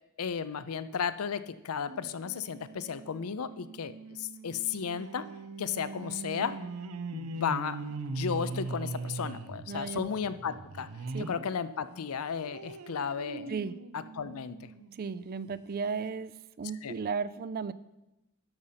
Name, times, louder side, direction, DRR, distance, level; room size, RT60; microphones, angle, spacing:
voice 1, 0.2-5.3 5.6-6.6 7.1-10.9 11.2-13.6 13.9-14.7 16.8-16.9, left 6 dB, 70° left, 13 dB, 0.5 m, -34 dB
sound 1, 1.9-11.5 11.9-15.0 15.5-15.6 15.9-16.0, right 3 dB, 80° right, 0.7 m, -41 dB
voice 2, 9.7-10.1 11.1-11.3 13.5-13.7 14.9-17.7, right 5 dB, 45° right, 16 dB, 0.4 m, -35 dB
12.5 x 5.5 x 5.7 m, 0.95 s
head